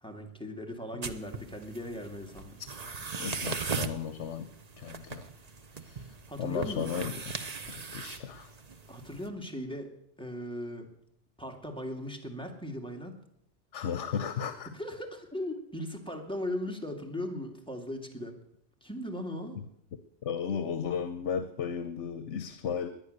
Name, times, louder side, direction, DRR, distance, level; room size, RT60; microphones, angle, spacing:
voice 1, 0.0-2.6 6.3-6.9 8.9-9.9 10.2-10.9 11.4-13.2 14.7-18.4 18.8-19.6, left 1 dB, 5° left, 2 dB, 2.4 m, -38 dB
sound 1, 1.0-9.3, right 5 dB, 35° right, 0.9 m, -39 dB
voice 2, 3.2-4.5 4.8-5.2 5.8-8.5 13.7-14.7 20.2-22.9, left 7 dB, 75° left, 10 dB, 1.2 m, -35 dB
19.0 x 11.0 x 6.7 m, 0.73 s
omnidirectional pair, 1.2 m